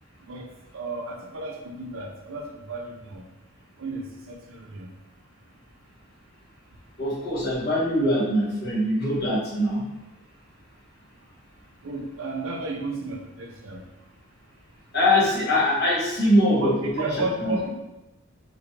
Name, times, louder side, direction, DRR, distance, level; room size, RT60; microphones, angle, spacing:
voice 1, 0.3-3.2 3.8-4.9 11.8-13.8 16.6-17.7, right 2 dB, 60° right, 1 dB, 0.6 m, -33 dB
voice 2, 7.0-9.8 14.9-17.6, left 1 dB, 50° left, -7 dB, 1.5 m, -23 dB
4.8 x 2.6 x 3.3 m, 1.0 s
head